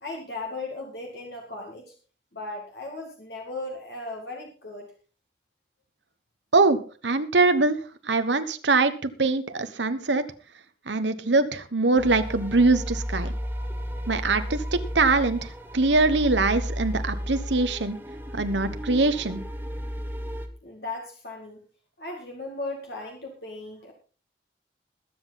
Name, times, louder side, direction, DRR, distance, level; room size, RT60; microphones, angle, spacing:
voice 1, 0.0-1.9 2.3-4.9 20.6-21.6 22.0-23.9, left 2 dB, 60° left, 1 dB, 2.2 m, -37 dB
voice 2, 7.0-7.8 8.0-10.2 10.9-13.3 14.1-15.4 15.7-18.0 18.3-19.4, right 3 dB, 80° right, 10 dB, 1.2 m, -22 dB
sound 1, 12.0-20.5, equal, 10° right, 1.2 m, -33 dB
21.5 x 7.9 x 4.1 m, 0.37 s
head